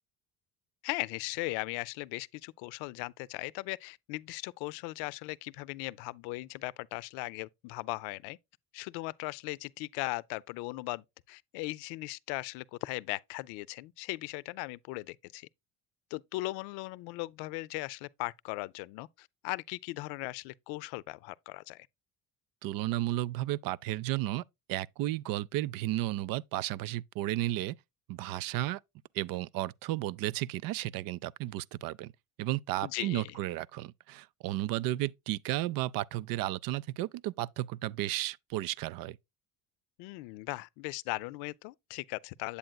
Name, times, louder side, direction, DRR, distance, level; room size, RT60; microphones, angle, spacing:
voice 1, 0.8-8.4 8.7-15.5 16.1-21.9 32.8-33.4 40.0-42.6, left 21 dB, 85° left, 0.5 m, -38 dB
voice 2, 22.6-24.4 24.7-27.8 28.1-28.8 29.1-32.1 32.4-39.2, right 15 dB, 65° right, 0.5 m, -33 dB
8.3 x 7.7 x 2.3 m
supercardioid pair, 95°, 37 cm